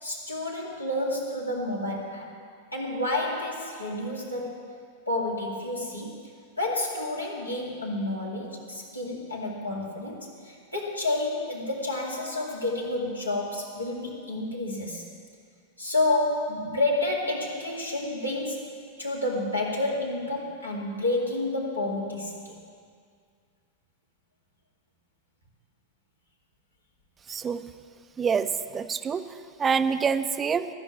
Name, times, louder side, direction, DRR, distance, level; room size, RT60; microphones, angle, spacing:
voice 1, 0.0-2.3 2.7-4.6 5.1-6.2 6.6-15.1 15.8-18.7 19.0-22.6, left 2 dB, 85° left, -3 dB, 2.1 m, -30 dB
voice 2, 27.3-27.6 28.2-30.7, right 6 dB, 20° right, 11 dB, 0.5 m, -27 dB
14.0 x 6.2 x 9.2 m, 2.2 s
figure-of-eight pair, 90°, 0 cm